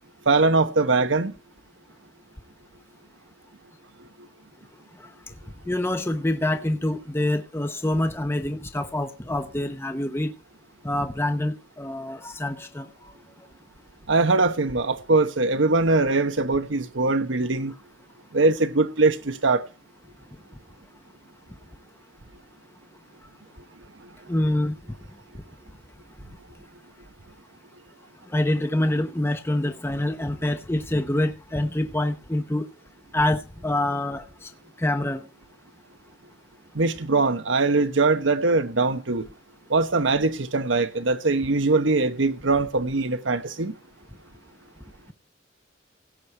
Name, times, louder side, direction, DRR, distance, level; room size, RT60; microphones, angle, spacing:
voice 1, 0.3-1.3 14.1-17.7 18.3-19.6 36.7-39.2 39.7-43.7, right 3 dB, 85° right, 1.1 m, -22 dB
voice 2, 5.7-10.3 10.8-13.1 24.3-24.8 28.3-32.7 33.1-34.5 34.8-35.3, left 1 dB, 15° left, 0.9 m, -26 dB
17.0 x 8.2 x 4.6 m
head